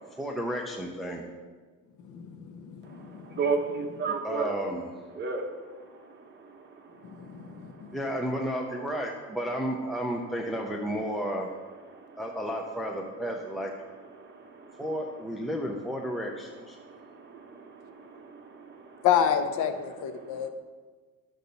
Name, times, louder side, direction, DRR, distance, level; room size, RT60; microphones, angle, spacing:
voice 1, 0.2-1.2 4.2-4.9 7.9-11.5 12.2-13.7 14.8-16.8, equal, ahead, 1 dB, 0.6 m, -32 dB
voice 2, 2.0-3.4 7.0-8.0 19.0-20.5, left 8 dB, 70° left, 8 dB, 0.9 m, -29 dB
voice 3, 2.8-4.5 5.1-8.0 11.9-12.2 14.1-14.8 16.8-19.1 20.2-20.5, right 4 dB, 35° right, 2 dB, 1.2 m, -36 dB
12.0 x 6.6 x 4.1 m, 1.4 s
cardioid pair, 160°, 32 cm